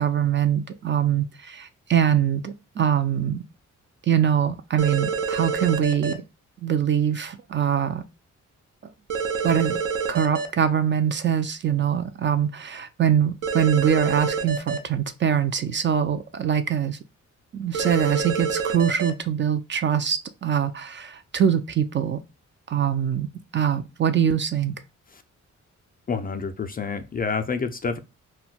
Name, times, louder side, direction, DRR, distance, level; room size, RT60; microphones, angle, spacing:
voice 1, 0.0-3.4 4.0-6.2 6.6-8.0 8.8-8.9 9.4-9.8 10.1-17.0 17.5-22.2 22.7-23.3 23.5-24.7, right 8 dB, 40° right, 0.4 m, -23 dB
sound 1, 4.8-6.1 9.1-10.5 13.4-14.8 17.7-19.1, right 5 dB, 75° right, 0.7 m, -27 dB
voice 2, 26.1-28.0, left 5 dB, 30° left, 0.3 m, -28 dB
2.2 x 2.2 x 3.8 m
cardioid pair, 70°, 31 cm